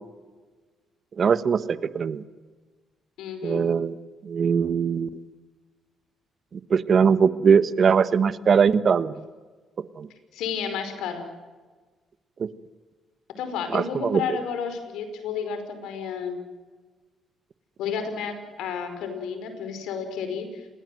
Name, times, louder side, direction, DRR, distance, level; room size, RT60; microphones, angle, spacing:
voice 1, 1.2-2.2 3.4-4.0 4.2-5.2 6.5-9.3 10.0-10.1 12.4-12.5 13.7-14.4, right 6 dB, 50° right, 13 dB, 1.3 m, -21 dB
voice 2, 3.2-3.6 10.3-11.2 13.4-16.5 17.8-20.6, left 7 dB, 90° left, 8 dB, 5.1 m, -31 dB
27.0 x 21.0 x 7.8 m, 1.3 s
cardioid pair, 90°, 0 cm